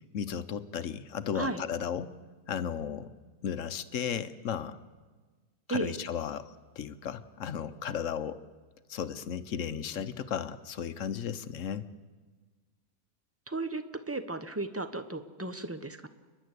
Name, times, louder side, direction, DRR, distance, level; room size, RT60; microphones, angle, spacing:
voice 1, 0.1-2.1 2.5-3.1 3.4-4.8 5.7-8.4 8.9-11.9, left 8 dB, 60° left, 12 dB, 1.1 m, -35 dB
voice 2, 13.5-16.1, right 2 dB, 15° right, 10 dB, 0.7 m, -35 dB
29.5 x 11.0 x 8.2 m, 1.4 s
omnidirectional pair, 1.6 m